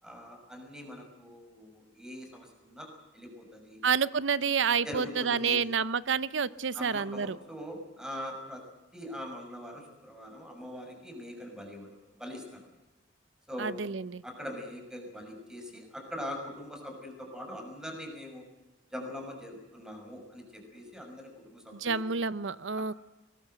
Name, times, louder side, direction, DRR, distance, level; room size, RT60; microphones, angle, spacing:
voice 1, 0.0-2.9 3.1-3.8 4.8-5.6 6.7-8.6 8.9-11.9 12.2-12.6 13.5-13.8 14.2-18.4 18.9-22.2, equal, 5° right, 3 dB, 6.3 m, -42 dB
voice 2, 3.8-7.4 13.6-14.2 21.7-22.9, right 6 dB, 85° right, 17 dB, 0.8 m, -29 dB
22.5 x 21.0 x 8.0 m, 1.1 s
head